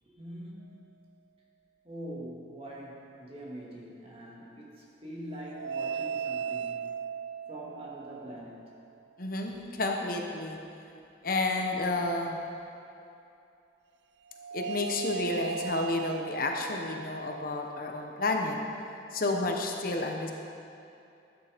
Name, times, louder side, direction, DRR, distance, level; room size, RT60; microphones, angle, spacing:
voice 1, 0.0-0.9 1.8-6.9 7.5-8.8, right 1 dB, 30° right, -4 dB, 2.2 m, -44 dB
sound 1, 5.4-8.8 14.3-19.0, right 6 dB, 70° right, 0.4 m, -38 dB
voice 2, 9.2-10.6 11.2-12.4 14.5-18.6 19.1-20.3, left 2 dB, 50° left, 2 dB, 1.0 m, -31 dB
13.0 x 9.6 x 5.1 m, 2.7 s
head